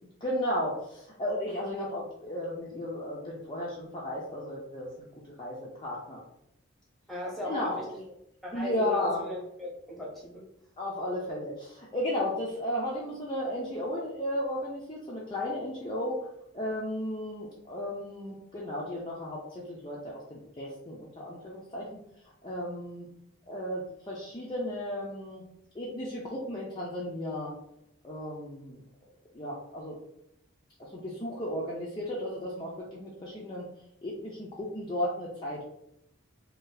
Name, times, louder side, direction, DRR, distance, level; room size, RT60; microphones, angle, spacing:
voice 1, 0.2-4.9 5.4-6.2 7.4-7.8 8.5-9.2 10.8-16.2 16.5-21.9 22.4-23.1 23.5-25.4 25.7-27.5 28.0-28.8 29.3-30.0 30.8-33.7 34.0-35.6, left 1 dB, 20° left, -5 dB, 0.4 m, -34 dB
voice 2, 7.1-8.0 8.4-10.5, equal, ahead, -4 dB, 0.8 m, -38 dB
2.6 x 2.3 x 3.8 m, 0.78 s
head